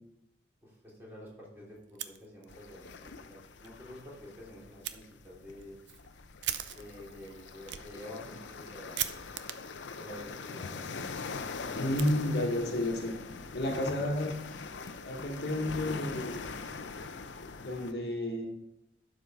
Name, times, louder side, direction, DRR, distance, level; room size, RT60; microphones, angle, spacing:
voice 1, 0.6-5.8 6.7-9.1 9.9-10.8 11.8-12.8, left 1 dB, 10° right, -5 dB, 3.0 m, -49 dB
Fire, 1.8-2.8 3.1-3.2 3.6-3.7 4.8-5.0 5.5-12.7, right 11 dB, 80° right, 0.6 m, -42 dB
sound 1, 2.5-17.9, left 4 dB, 90° left, 0.6 m, -43 dB
voice 2, 11.7-13.1 13.5-14.3 15.0-16.4 17.6-18.5, left 1 dB, 65° left, 2 dB, 1.4 m, -31 dB
11.5 x 5.0 x 4.8 m, 0.84 s
head